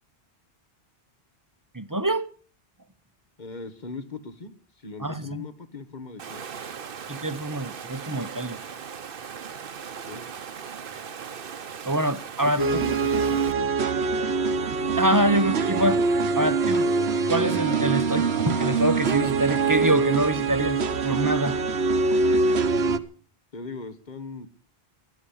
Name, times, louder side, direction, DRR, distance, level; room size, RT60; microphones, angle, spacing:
voice 1, 1.7-2.3 5.0-5.4 7.1-8.6 11.9-12.8 15.0-16.0 16.4-16.9 17.3-21.6, right 1 dB, 20° right, 0.8 m, -25 dB
voice 2, 3.4-4.5 4.8-6.4 10.1-10.2 12.4-13.7 23.5-24.5, left 4 dB, 45° left, 1.6 m, -37 dB
Water, 6.2-13.5, right 7 dB, 60° right, 1.1 m, -38 dB
sound 1, 12.6-23.0, right 4 dB, 80° right, 1.3 m, -24 dB
15.5 x 12.0 x 7.1 m
omnidirectional pair, 1.1 m